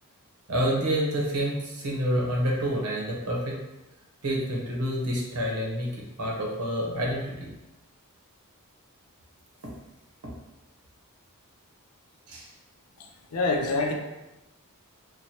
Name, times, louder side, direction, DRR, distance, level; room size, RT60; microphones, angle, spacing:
voice 1, 0.5-3.6 4.2-7.5 12.3-12.5, equal, 85° right, -3 dB, 1.0 m, -28 dB
voice 2, 13.3-13.9, left 3 dB, 75° left, 2 dB, 0.6 m, -25 dB
3.0 x 2.2 x 4.2 m, 1.0 s
head